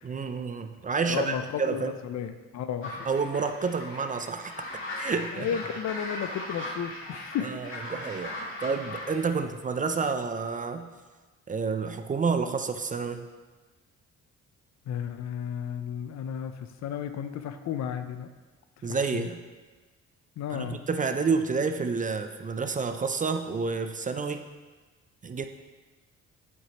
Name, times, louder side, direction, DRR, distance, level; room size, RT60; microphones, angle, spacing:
voice 1, 0.0-1.9 3.1-5.5 7.4-10.9 11.5-13.3 18.8-19.4 20.5-24.4 25.2-25.5, right 5 dB, 25° right, 7 dB, 0.4 m, -29 dB
voice 2, 1.1-3.1 5.3-7.5 14.9-18.3 19.1-19.3 20.4-20.8, left 8 dB, 65° left, 9 dB, 0.6 m, -33 dB
sound 1, 2.8-9.3, left 1 dB, 40° left, 2.2 m, -38 dB
8.0 x 5.9 x 2.9 m, 1.3 s
cardioid pair, 90°, 30 cm